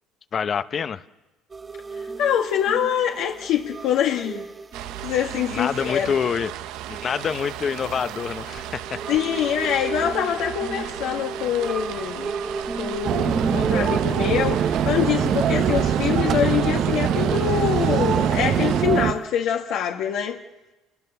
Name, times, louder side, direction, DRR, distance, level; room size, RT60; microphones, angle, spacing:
voice 1, 0.3-1.0 5.5-6.5 6.9-9.0, left 7 dB, 35° left, 0.9 m, -26 dB
sound 1, 1.5-19.3, right 4 dB, 20° right, 1.0 m, -36 dB
voice 2, 2.2-4.5 5.0-6.1 9.1-12.4 12.8-20.4, left 9 dB, 70° left, 1.6 m, -24 dB
sound 2, 4.7-18.8, right 13 dB, 70° right, 0.8 m, -36 dB
sound 3, 13.0-19.1, right 8 dB, 45° right, 1.0 m, -22 dB
29.5 x 18.5 x 7.0 m
cardioid pair, 115°, 0 cm